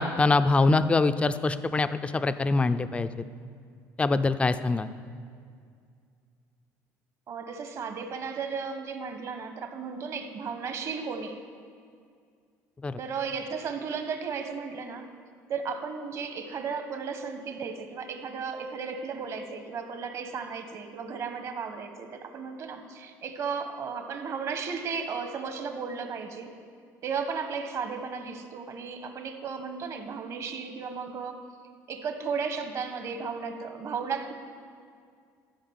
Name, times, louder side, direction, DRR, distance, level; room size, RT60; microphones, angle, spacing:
voice 1, 0.0-3.1 4.0-4.9 12.8-13.0, left 3 dB, 15° left, 12 dB, 0.4 m, -24 dB
voice 2, 7.3-11.4 13.0-15.1 15.5-26.5 27.0-31.4 31.9-34.3, right 5 dB, 50° right, 7 dB, 1.2 m, -34 dB
13.0 x 5.1 x 8.0 m, 2.2 s
cardioid pair, 105°, 7 cm